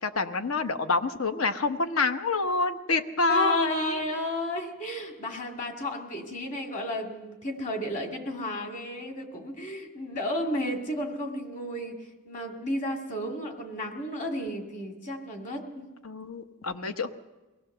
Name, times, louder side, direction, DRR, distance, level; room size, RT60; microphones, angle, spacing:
voice 1, 0.0-4.0 16.0-17.1, left 3 dB, 75° left, 8 dB, 1.0 m, -27 dB
voice 2, 3.3-12.0 12.3-15.9, left 1 dB, 35° left, 3 dB, 2.3 m, -33 dB
23.0 x 17.0 x 6.7 m, 1.2 s
head